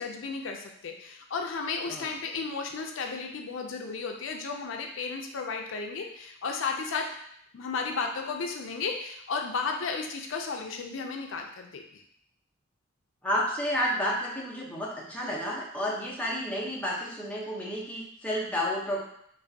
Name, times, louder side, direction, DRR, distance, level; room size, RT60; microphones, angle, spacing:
voice 1, 0.0-7.1 7.5-12.0, left 4 dB, 70° left, 3 dB, 0.4 m, -34 dB
voice 2, 13.2-19.1, equal, 5° left, -5 dB, 0.7 m, -31 dB
5.3 x 2.5 x 2.7 m, 0.69 s
head